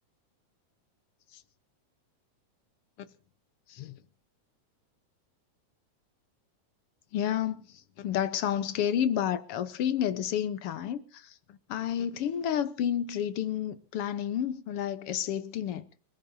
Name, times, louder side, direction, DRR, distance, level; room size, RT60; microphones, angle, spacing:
voice 1, 3.7-4.0 7.1-15.8, left 9 dB, 65° left, 1.6 m, -30 dB
28.5 x 15.0 x 2.7 m
omnidirectional pair, 3.5 m